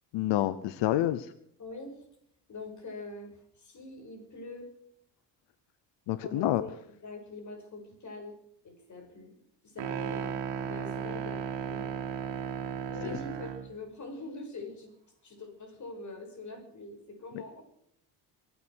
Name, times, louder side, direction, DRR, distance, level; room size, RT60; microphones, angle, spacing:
voice 1, 0.1-1.3 6.1-6.6, left 13 dB, 70° left, 13 dB, 1.0 m, -28 dB
voice 2, 1.6-2.0 2.5-4.7 6.2-6.7 7.0-8.4 8.6-9.3 9.6-11.9 12.9-14.9 15.2-17.6, left 2 dB, 40° left, 5 dB, 6.2 m, -44 dB
sound 1, 9.8-13.7, right 7 dB, 70° right, 2.5 m, -35 dB
24.0 x 9.4 x 6.3 m, 0.70 s
cardioid pair, 100°, 44 cm